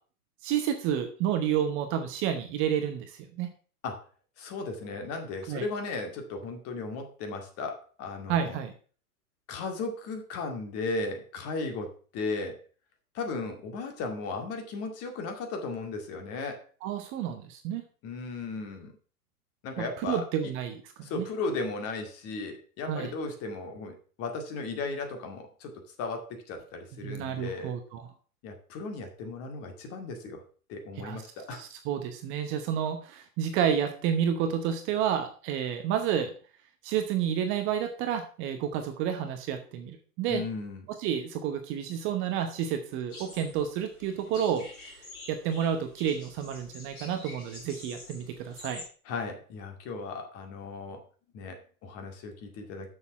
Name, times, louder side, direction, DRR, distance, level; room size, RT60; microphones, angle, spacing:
voice 1, 0.4-3.5 5.5-5.6 8.3-8.7 16.8-17.8 19.8-21.2 22.9-23.1 27.0-28.0 31.0-31.2 31.5-36.3 36.8-40.4 41.0-44.9 45.3-48.8, right 9 dB, 25° right, 7 dB, 0.9 m, -30 dB
voice 2, 4.4-8.6 9.5-12.6 13.1-16.6 18.0-18.9 19.6-20.5 21.0-27.7 28.4-30.4 30.7-31.6 40.3-40.9 49.1-51.0 51.3-52.9, left 3 dB, 30° left, 4 dB, 2.1 m, -36 dB
sound 1, 43.1-48.8, left 2 dB, 70° left, 4.9 m, -47 dB
7.0 x 6.8 x 5.9 m, 0.41 s
figure-of-eight pair, 105°, 45 cm